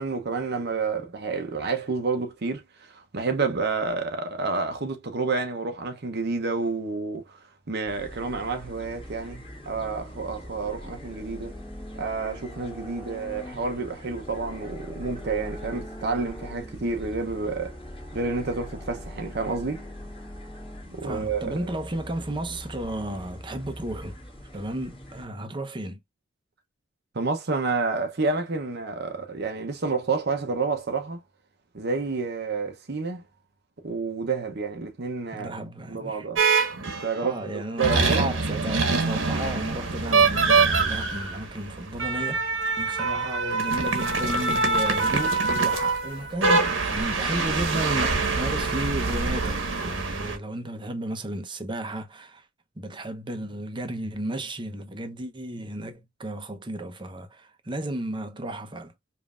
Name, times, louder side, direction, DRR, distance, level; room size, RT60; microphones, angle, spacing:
voice 1, 0.0-7.4 7.7-11.5 12.0-17.7 18.1-19.8 20.9-21.6 27.1-31.2 31.7-33.2 33.8-35.5 35.9-36.4 36.9-37.4 37.8-38.2 41.2-41.3, right 4 dB, 55° right, 0.7 m, -29 dB
sound 1, 7.9-25.3, left 1 dB, 25° left, 1.5 m, -41 dB
voice 2, 21.0-24.2 24.5-26.0 35.3-36.3 37.2-52.4 52.8-58.9, right 1 dB, 25° right, 0.7 m, -33 dB
sound 2, 36.4-37.2 37.8-50.4, right 4 dB, 80° right, 1.2 m, -24 dB
5.3 x 2.6 x 2.4 m
head